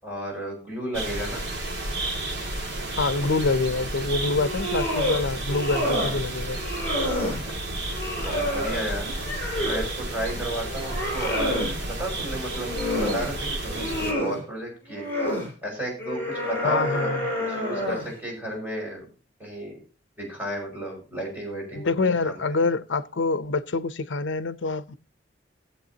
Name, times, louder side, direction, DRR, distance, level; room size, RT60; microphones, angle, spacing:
voice 1, 0.0-1.4 5.8-6.2 7.2-7.8 8.2-9.0 9.6-11.6 11.8-12.7 13.0-15.0 15.6-17.2 17.5-19.0 19.4-19.8 20.2-21.9 22.2-22.4, right 1 dB, 10° right, 6.0 m, -33 dB
sound 1, 0.9-14.1, right 1 dB, 65° right, 2.3 m, -32 dB
voice 2, 3.0-6.6 16.6-17.3 21.7-25.0, left 3 dB, 75° left, 0.7 m, -26 dB
sound 2, 4.3-5.2 5.5-6.2 6.5-7.4 7.9-9.9 10.3-11.7 12.4-13.3 13.7-14.4 14.9-15.5 16.0-18.1, left 1 dB, 10° left, 5.2 m, -29 dB
18.5 x 7.9 x 2.8 m
head